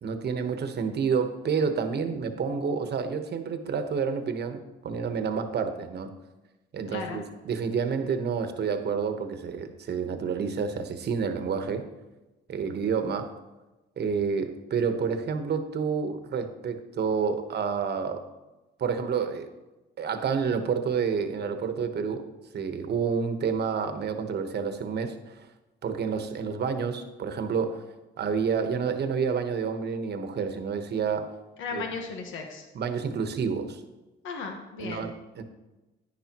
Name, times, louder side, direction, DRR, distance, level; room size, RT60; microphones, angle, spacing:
voice 1, 0.0-6.1 6.7-11.8 12.5-13.3 14.0-18.2 18.8-19.5 20.0-22.3 22.5-25.5 25.8-27.9 28.2-31.3 31.7-31.8 32.7-33.8 34.8-35.4, right 6 dB, 55° right, 8 dB, 1.1 m, -29 dB
voice 2, 6.9-7.2 31.6-32.7 34.2-35.1, left 5 dB, 85° left, 3 dB, 1.3 m, -36 dB
10.5 x 10.0 x 3.0 m, 1.1 s
cardioid pair, 90°, 20 cm